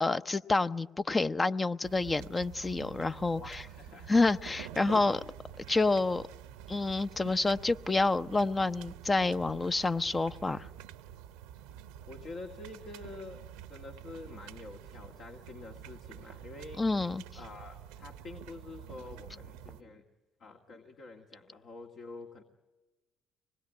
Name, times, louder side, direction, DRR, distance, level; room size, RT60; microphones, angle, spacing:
voice 1, 0.0-3.6 4.1-5.2 5.7-6.2 6.7-10.7 16.8-17.2, left 3 dB, 25° left, 12 dB, 0.8 m, -28 dB
sound 1, 1.8-19.8, right 10 dB, 80° right, 0.8 m, -48 dB
voice 2, 3.3-4.1 4.4-4.6 5.2-5.3 10.4-10.6 12.1-16.8 17.3-20.0 20.4-22.4, left 3 dB, 60° left, 2 dB, 2.1 m, -47 dB
25.0 x 20.5 x 9.6 m, 1.2 s
hypercardioid pair, 60°, 0 cm